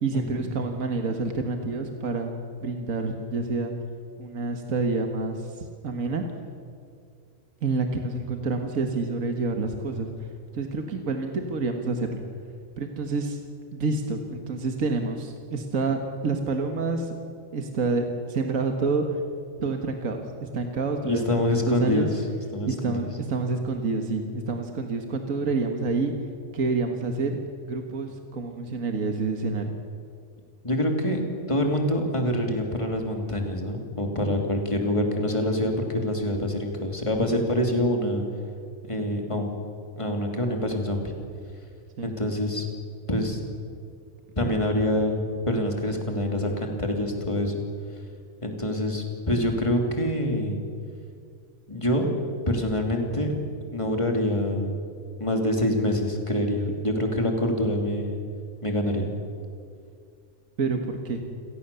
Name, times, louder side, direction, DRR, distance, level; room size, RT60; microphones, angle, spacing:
voice 1, 0.0-2.3 2.6-3.7 4.2-6.2 7.6-10.1 10.5-12.2 12.8-13.4 13.7-17.1 17.5-19.2 19.6-21.3 21.7-22.1 22.7-26.1 26.5-27.4 27.7-29.8 42.0-42.1 60.6-61.2, right 3 dB, 70° right, 4 dB, 2.0 m, -28 dB
voice 2, 21.0-22.1 22.5-23.0 30.6-31.2 31.5-38.2 38.9-39.5 40.0-41.1 42.0-42.7 43.1-43.4 44.4-47.6 48.4-50.6 51.7-52.1 52.5-53.3 53.7-54.9 55.2-58.2 58.6-59.1, left 1 dB, 20° left, 2 dB, 2.9 m, -26 dB
29.0 x 17.5 x 7.0 m, 2.3 s
omnidirectional pair, 1.4 m